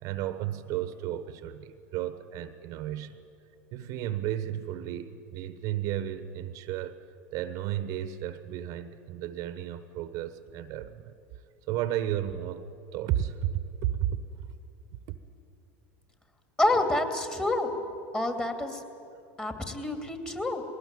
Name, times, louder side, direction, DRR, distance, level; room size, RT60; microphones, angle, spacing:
voice 1, 0.0-3.2 3.7-7.0 7.3-11.1 11.7-12.6 12.9-14.5, right 11 dB, 55° right, 13 dB, 1.1 m, -33 dB
voice 2, 16.6-17.7 18.1-18.8 19.4-20.6, left 1 dB, 15° left, 6 dB, 2.7 m, -28 dB
20.5 x 18.5 x 9.1 m, 2.6 s
hypercardioid pair, 85°, 7 cm